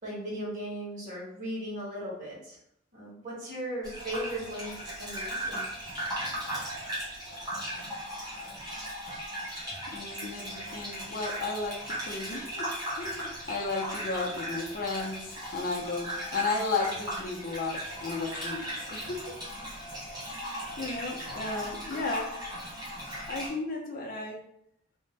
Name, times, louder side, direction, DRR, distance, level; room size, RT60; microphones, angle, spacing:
voice 1, 0.0-2.6 2.9-5.7, equal, 45° right, -6 dB, 1.2 m, -37 dB
Gurgling / Bathtub (filling or washing), 3.8-23.5, equal, 20° right, 0.8 m, -37 dB
voice 2, 9.9-12.6 12.9-19.3 20.8-22.3 23.3-24.4, left 3 dB, 45° left, -1 dB, 0.5 m, -34 dB
2.5 x 2.1 x 3.2 m, 0.72 s
head